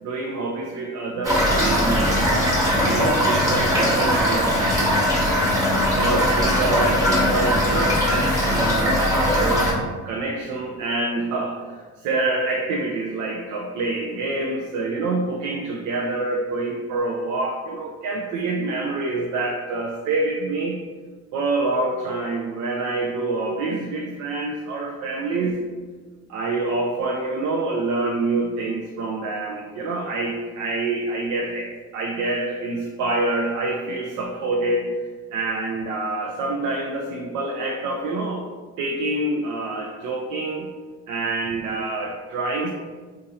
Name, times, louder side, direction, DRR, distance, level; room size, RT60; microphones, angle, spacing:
voice 1, 0.0-2.3 2.9-5.3 5.6-9.8 10.0-20.8 21.3-25.6 26.3-34.9 35.3-38.4 38.8-40.7 41.1-42.7, right 2 dB, 90° right, 0 dB, 0.5 m, -26 dB
Toilet flush / Fill (with liquid), 1.2-9.7, equal, 10° right, 1.1 m, -20 dB
2.7 x 2.5 x 4.0 m, 1.4 s
cardioid pair, 90°, 30 cm